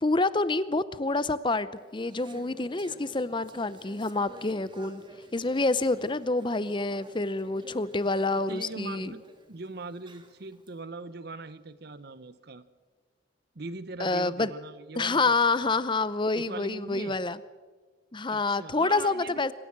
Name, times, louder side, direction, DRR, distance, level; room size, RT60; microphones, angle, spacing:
voice 1, 0.0-5.0 5.3-9.1 14.0-14.5 15.0-17.4 18.1-19.5, left 3 dB, 25° left, 15 dB, 0.7 m, -27 dB
Conversation / Chatter, 1.8-10.7, right 1 dB, 25° right, 1.8 m, -51 dB
voice 2, 8.5-9.2 9.5-12.6 13.5-15.3 16.3-17.2 18.3-19.4, right 3 dB, 55° right, 15 dB, 0.9 m, -41 dB
26.0 x 15.0 x 7.5 m, 1.4 s
head